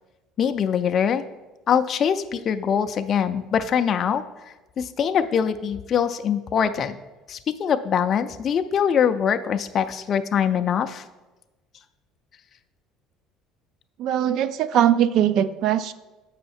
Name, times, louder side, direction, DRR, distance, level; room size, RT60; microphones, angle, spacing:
voice 1, 0.4-1.2 1.7-4.2 4.8-7.0 7.3-11.0, left 8 dB, 35° left, 8 dB, 0.3 m, -23 dB
voice 2, 14.0-15.9, right 10 dB, 60° right, 14 dB, 0.3 m, -21 dB
7.8 x 5.6 x 4.2 m, 1.1 s
cardioid pair, 140°, 0 cm